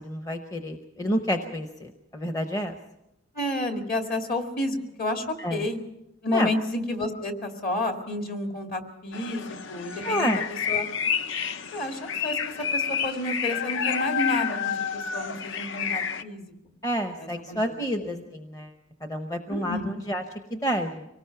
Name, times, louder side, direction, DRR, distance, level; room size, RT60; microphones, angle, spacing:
voice 1, 0.0-2.8 5.4-5.6 6.3-6.5 10.0-10.4 16.8-18.7 19.0-20.2 20.5-21.1, equal, 15° left, 5 dB, 0.8 m, -29 dB
voice 2, 3.3-5.8 6.2-10.4 10.7-10.8 11.7-12.4 12.7-16.5 17.2-17.6 18.0-18.2 19.5-19.9, left 1 dB, 45° left, 4 dB, 2.1 m, -30 dB
sound 1, 9.1-16.2, left 7 dB, 60° left, 0.7 m, -29 dB
24.5 x 18.5 x 5.8 m, 0.90 s
head